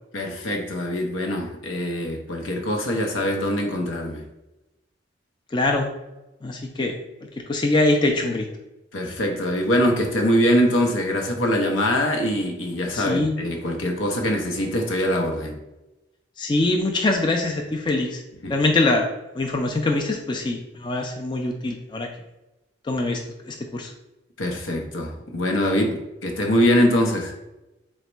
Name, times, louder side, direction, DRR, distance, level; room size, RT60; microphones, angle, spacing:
voice 1, 0.1-4.2 8.9-15.6 18.4-18.6 24.4-27.3, equal, 80° left, 0.7 m, -23 dB
voice 2, 5.5-5.9 6.4-6.9 7.5-8.5 12.9-13.3 16.4-18.2 18.5-19.1 19.4-22.1 22.9-23.2 23.5-23.9, left 2 dB, 25° left, 0.3 m, -23 dB
3.9 x 2.1 x 4.4 m
head